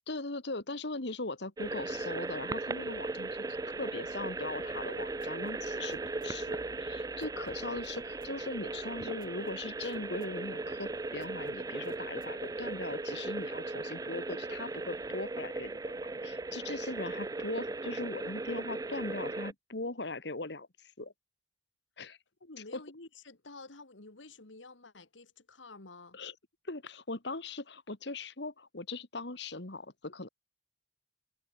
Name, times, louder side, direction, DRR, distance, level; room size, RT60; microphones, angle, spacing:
voice 1, 0.1-3.4 3.8-15.9 16.2-20.7 21.0-21.1 22.0-22.2 22.7-22.8 26.1-26.3 26.7-30.3, left 2 dB, 60° left, 1.8 m, -40 dB
sound 1, 1.6-19.5, right 3 dB, 20° right, 0.4 m, -37 dB
sound 2, 4.7-12.6, right 2 dB, 45° right, 3.7 m, -64 dB
voice 2, 22.4-26.2, left 3 dB, 80° left, 2.1 m, -51 dB
head